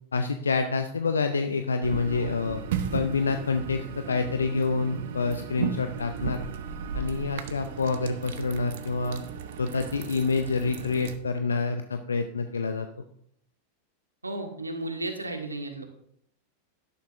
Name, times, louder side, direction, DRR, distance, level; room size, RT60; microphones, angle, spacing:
voice 1, 0.1-2.6 2.9-6.4 6.9-9.2 9.6-13.0, left 4 dB, 75° left, 8 dB, 0.6 m, -27 dB
sound 1, 1.8-11.2, right 7 dB, 55° right, 0.9 m, -36 dB
voice 2, 14.2-15.8, right 2 dB, 80° right, 5 dB, 1.6 m, -34 dB
12.5 x 11.5 x 2.6 m, 0.70 s
figure-of-eight pair, 90°, 0 cm